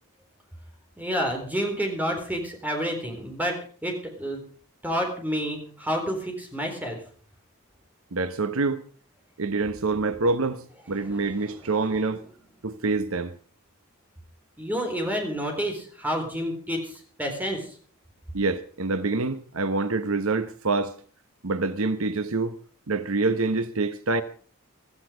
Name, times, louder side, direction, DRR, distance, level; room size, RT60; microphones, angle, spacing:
voice 1, 1.0-4.4 4.8-7.0 10.9-12.1 14.6-17.8, equal, 5° right, 4.0 m, -30 dB
voice 2, 8.1-8.8 9.4-12.2 12.6-13.3 18.3-20.9 21.4-22.6 22.9-24.2, right 3 dB, 70° right, 1.0 m, -26 dB
16.0 x 14.5 x 5.0 m
head